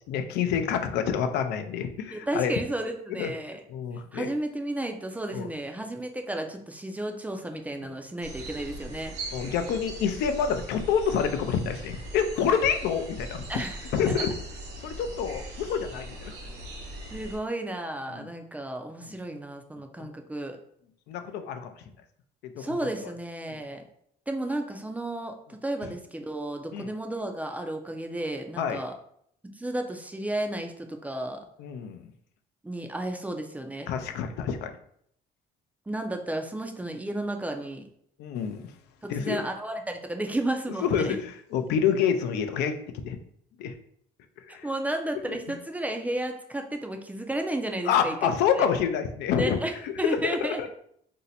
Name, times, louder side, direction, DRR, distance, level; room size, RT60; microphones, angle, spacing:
voice 1, 0.1-2.5 3.2-3.3 3.7-4.3 5.3-5.5 9.3-13.4 13.9-14.3 14.8-16.3 18.1-18.3 19.1-19.2 20.0-20.1 21.1-21.7 22.6-22.7 23.5-23.6 26.7-26.9 28.6-28.8 31.6-32.0 33.9-34.7 38.2-38.6 39.1-39.4 40.8-42.7 43.0-43.2 43.6-43.7 44.5-44.7 47.9-49.6 49.8-50.7, left 7 dB, 80° left, 8 dB, 0.4 m, -27 dB
voice 2, 2.1-3.6 4.1-9.2 13.5-14.2 16.5-16.6 17.1-20.6 22.6-23.8 24.3-28.9 29.4-31.4 32.6-33.9 35.9-37.9 39.0-41.2 44.5-48.7 49.4-49.7 50.0-50.7, right 1 dB, 10° right, 4 dB, 0.3 m, -33 dB
sound 1, 8.2-17.4, right 1 dB, 85° right, 0.9 m, -40 dB
2.6 x 2.1 x 4.0 m, 0.68 s
cardioid pair, 110°, 17 cm